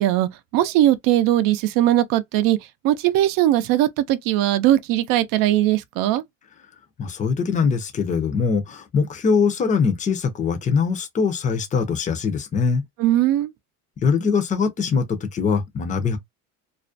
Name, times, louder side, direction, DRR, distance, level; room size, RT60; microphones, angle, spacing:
voice 1, 0.0-2.6 2.8-6.2 13.0-13.5, right 13 dB, 65° right, 0.5 m, -19 dB
voice 2, 7.0-12.8 14.0-16.2, left 5 dB, 20° left, 0.5 m, -22 dB
2.4 x 2.1 x 2.5 m
cardioid pair, 140°, 37 cm